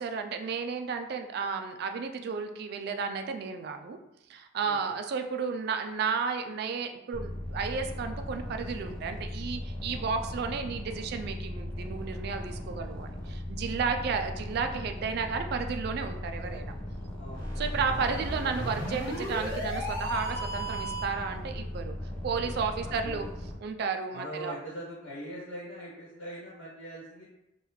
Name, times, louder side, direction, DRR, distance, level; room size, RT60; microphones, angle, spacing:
voice 1, 0.0-4.0 4.3-16.7 17.6-21.9 22.2-23.2 23.6-24.5, right 5 dB, 55° right, 6 dB, 0.3 m, -33 dB
sound 1, 7.1-23.6, left 1 dB, 5° left, 0.5 m, -38 dB
voice 2, 17.2-17.5 22.3-23.2 24.1-27.2, equal, 80° left, -7 dB, 1.0 m, -41 dB
sound 2, 17.3-21.3, right 1 dB, 20° left, 1.1 m, -35 dB
3.3 x 2.3 x 3.1 m, 0.86 s
head